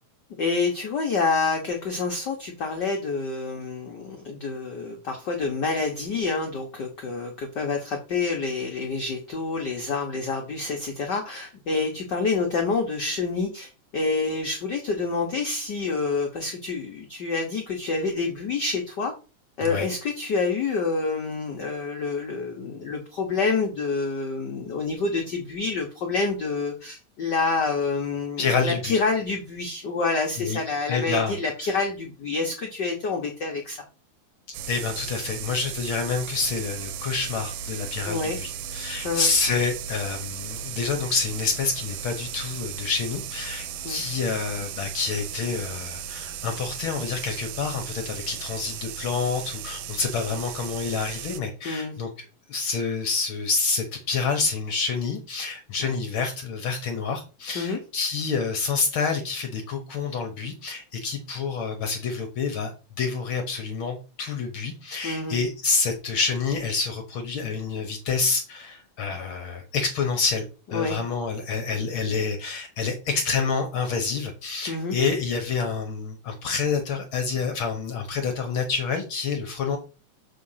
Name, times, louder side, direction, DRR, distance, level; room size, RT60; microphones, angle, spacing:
voice 1, 0.4-19.1 19.6-33.8 38.0-38.4 39.0-39.3 43.8-44.0 51.6-52.0 55.8-55.9 57.5-57.8 65.0-65.4 70.7-71.0 74.7-74.9, left 4 dB, 85° left, 2 dB, 0.9 m, -27 dB
voice 2, 28.4-29.0 30.4-30.6 30.9-31.3 31.6-31.8 34.7-62.7 63.0-70.4 70.7-79.8, left 5 dB, 65° left, 5 dB, 1.3 m, -28 dB
sound 1, 34.5-51.4, right 9 dB, 75° right, 1.6 m, -36 dB
6.7 x 3.8 x 5.6 m, 0.34 s
omnidirectional pair, 3.4 m